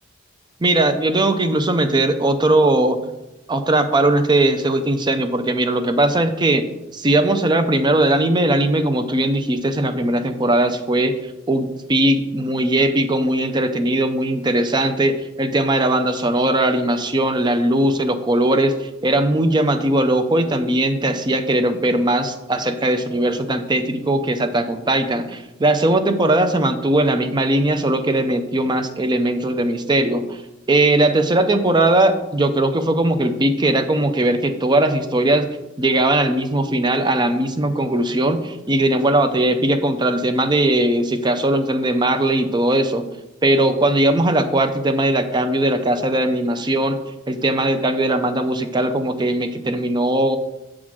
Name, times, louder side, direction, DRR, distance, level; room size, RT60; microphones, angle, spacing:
voice 1, 0.6-3.0 3.5-6.7 6.9-11.2 11.5-30.4 30.7-35.5 35.8-43.0 43.4-47.0 47.3-50.4, right 1 dB, 20° right, 9 dB, 0.5 m, -19 dB
7.3 x 3.7 x 6.1 m, 0.95 s
head